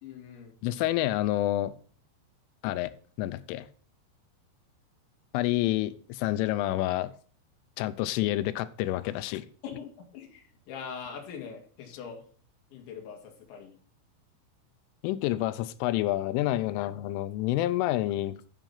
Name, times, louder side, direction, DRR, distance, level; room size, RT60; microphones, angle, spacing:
voice 1, 0.0-0.5 9.6-12.2 12.7-13.7 15.5-15.6, left 6 dB, 70° left, 1 dB, 4.3 m, -42 dB
voice 2, 0.6-1.7 2.6-2.9 3.2-3.7 5.3-7.1 7.8-9.5 15.0-18.3, left 15 dB, 85° left, 13 dB, 3.1 m, -28 dB
12.0 x 5.0 x 5.6 m, 0.44 s
omnidirectional pair, 5.7 m